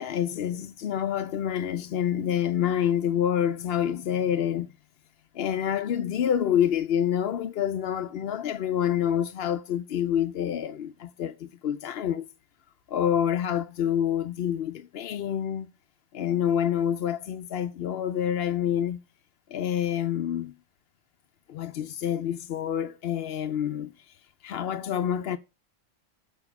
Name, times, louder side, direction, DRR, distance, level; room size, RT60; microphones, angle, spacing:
voice 1, 0.0-4.7 5.3-12.3 12.9-15.7 16.1-19.0 19.5-20.5 21.5-24.1 24.4-25.4, left 9 dB, 70° left, 0.8 m, -27 dB
7.0 x 5.4 x 7.0 m
omnidirectional pair, 1.1 m